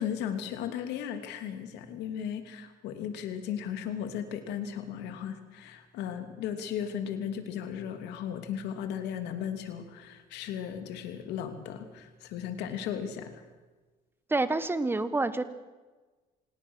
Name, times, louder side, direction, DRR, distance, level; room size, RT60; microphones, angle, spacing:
voice 1, 0.0-13.4, left 8 dB, 85° left, 7 dB, 2.9 m, -36 dB
voice 2, 14.3-15.4, right 2 dB, 15° right, 12 dB, 1.5 m, -27 dB
27.0 x 18.5 x 6.5 m, 1.3 s
cardioid pair, 110°, 17 cm